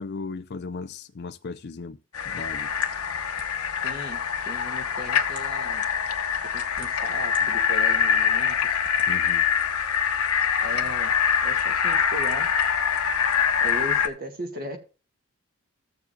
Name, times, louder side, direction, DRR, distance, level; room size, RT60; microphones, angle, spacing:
voice 1, 0.0-2.0 2.2-2.7 9.1-9.5, left 4 dB, 50° left, 0.4 m, -36 dB
sound 1, 2.1-14.1, left 7 dB, 90° left, 1.1 m, -24 dB
sound 2, 2.8-3.8 4.6-4.7 5.2-5.6 6.4-7.4 7.9-8.0 8.8-9.1, right 1 dB, 25° right, 1.8 m, -47 dB
voice 2, 3.8-5.9 6.5-8.8 10.6-11.1 11.4-12.5 13.6-14.8, equal, 45° right, 2.1 m, -37 dB
15.0 x 6.8 x 2.7 m
head